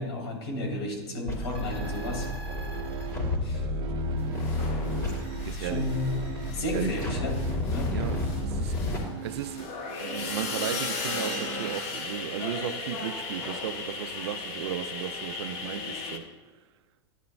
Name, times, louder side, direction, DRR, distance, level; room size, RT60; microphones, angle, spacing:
voice 1, 0.0-2.2 3.4-3.6 5.5-6.1 6.5-7.3 7.7-7.9, left 1 dB, 80° left, 3.2 m, -32 dB
sound 1, 1.3-9.0, left 2 dB, 25° left, 2.9 m, -31 dB
sound 2, 1.5-11.7, right 8 dB, 35° right, 1.2 m, -41 dB
sound 3, 4.3-6.2 6.4-16.2, left 3 dB, 50° left, 1.4 m, -36 dB
voice 2, 5.4-6.0 6.7-7.0 7.9-8.7 9.2-16.3, right 11 dB, 75° right, 0.5 m, -35 dB
13.0 x 10.5 x 2.3 m
hypercardioid pair, 115°, 14 cm